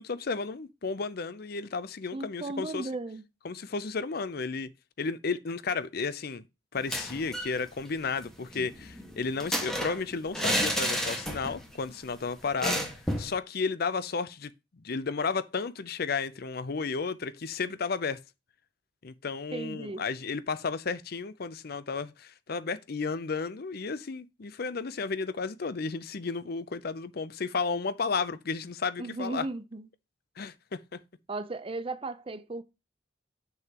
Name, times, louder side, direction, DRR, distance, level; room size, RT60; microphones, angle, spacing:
voice 1, 0.0-2.9 3.4-4.7 5.0-6.4 6.7-12.8 13.2-18.2 19.0-29.5 30.4-31.0, left 4 dB, 55° left, 0.6 m, -33 dB
voice 2, 2.1-3.2 19.5-20.1 29.0-29.9 31.3-32.6, right 2 dB, 30° right, 0.6 m, -36 dB
sound 1, 6.8-7.6 7.9-8.0 8.2-11.7 12.0-12.1 12.6-13.4, equal, 5° left, 1.6 m, -31 dB
7.1 x 6.5 x 2.9 m
head